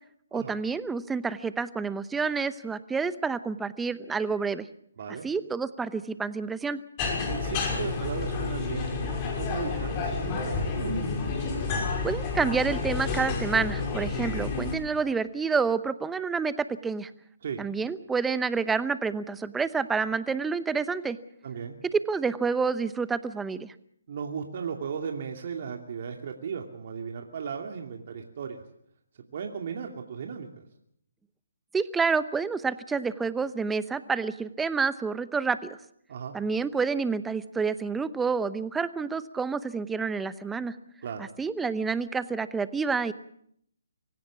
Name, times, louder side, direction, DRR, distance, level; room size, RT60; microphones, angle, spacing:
voice 1, 0.3-4.7 5.2-6.8 12.0-17.1 17.6-21.2 22.1-23.7 31.7-35.8 36.3-40.8 41.2-43.1, right 5 dB, 5° right, 14 dB, 0.8 m, -28 dB
sound 1, 7.0-14.7, left 4 dB, 25° left, 5.6 m, -30 dB
voice 2, 7.3-10.9 17.4-17.6 21.4-21.8 24.1-28.6 29.3-30.5 36.1-36.3 41.0-41.2, right 6 dB, 50° right, 3 dB, 2.6 m, -36 dB
24.0 x 16.5 x 7.3 m, 0.70 s
hypercardioid pair, 150°, 0 cm